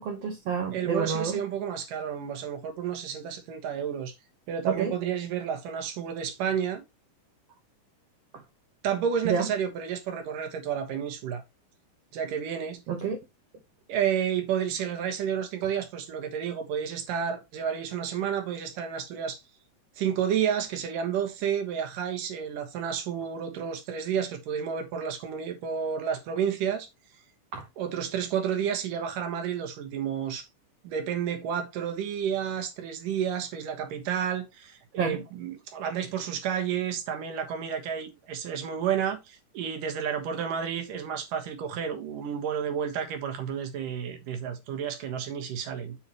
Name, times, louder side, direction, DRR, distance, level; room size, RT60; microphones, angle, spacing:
voice 1, 0.0-1.4 4.7-4.9 9.2-9.5 12.9-13.2 27.5-27.6 35.0-35.2, right 6 dB, 60° right, 2.0 m, -29 dB
voice 2, 0.7-4.1 4.5-6.8 8.8-11.4 12.1-12.8 13.9-19.4 20.0-26.9 27.8-30.5 30.8-46.0, right 8 dB, 85° right, 3.1 m, -31 dB
7.7 x 7.1 x 3.0 m
omnidirectional pair, 3.7 m